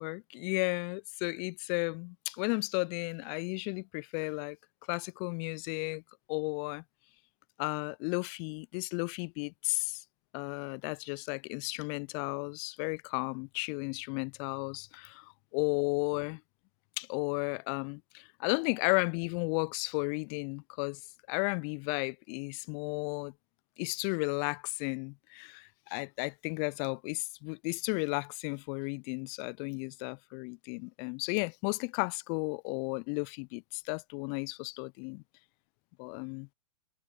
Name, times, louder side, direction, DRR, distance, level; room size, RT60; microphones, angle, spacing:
voice 1, 0.0-4.6 4.9-6.0 6.3-6.8 7.6-10.0 10.3-16.4 17.0-21.0 21.3-23.3 23.8-35.2 36.0-36.5, left 40 dB or more, 30° left, 0.4 m, -34 dB
figure-of-eight pair, 110°, 15 cm